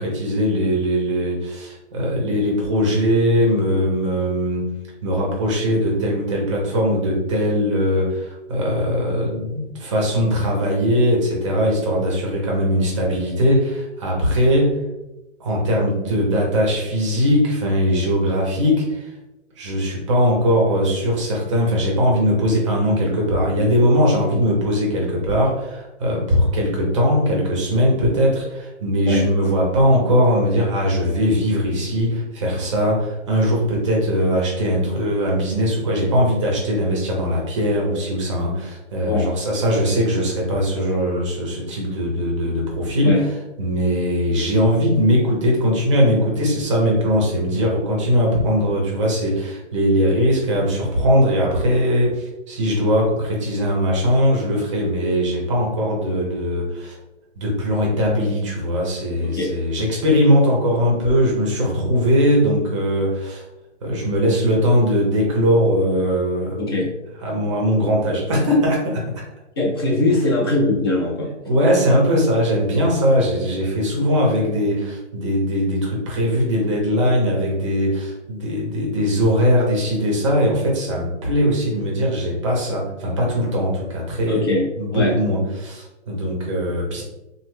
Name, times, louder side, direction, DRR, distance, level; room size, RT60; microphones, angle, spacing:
voice 1, 0.0-4.7 5.0-14.8 15.4-19.1 19.6-43.2 43.6-56.9 57.4-63.4 63.8-66.8 67.2-69.2 71.5-84.4 84.8-87.0, equal, 25° right, -2 dB, 0.6 m, -20 dB
voice 2, 59.2-59.5 66.6-66.9 69.6-71.3 84.3-85.1, left 2 dB, 20° left, -3 dB, 0.4 m, -21 dB
2.9 x 2.0 x 3.5 m, 0.99 s
hypercardioid pair, 150°, 36 cm